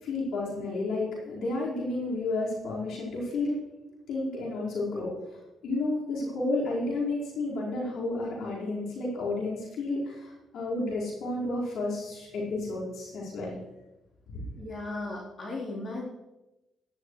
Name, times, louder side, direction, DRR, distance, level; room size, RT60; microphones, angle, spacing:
voice 1, 0.0-3.6 4.1-5.1 5.6-13.5 14.3-14.5, left 2 dB, 75° left, -5 dB, 4.9 m, -31 dB
voice 2, 14.6-16.0, left 2 dB, 45° left, -5 dB, 3.8 m, -36 dB
16.5 x 11.5 x 3.3 m, 0.99 s
cardioid pair, 90°, 0 cm